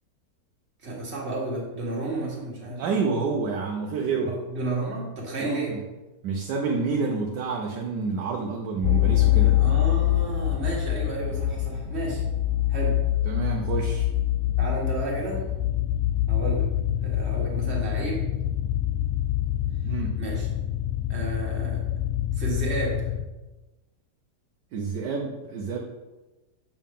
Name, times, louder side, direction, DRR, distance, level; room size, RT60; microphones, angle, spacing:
voice 1, 0.8-2.8 4.3-5.8 9.6-12.2 12.7-13.0 14.6-15.4 16.3-16.7 17.0-18.2 20.2-20.5 21.1-21.8 22.4-23.1, right 2 dB, 40° right, -3 dB, 1.9 m, -32 dB
voice 2, 2.8-4.4 5.4-5.8 6.2-9.6 13.2-14.1 19.8-20.2 24.7-25.8, right 4 dB, 80° right, 0 dB, 1.4 m, -28 dB
sound 1, 8.8-23.2, left 13 dB, 70° left, 0.7 m, -25 dB
7.3 x 5.5 x 3.6 m, 1.1 s
omnidirectional pair, 1.8 m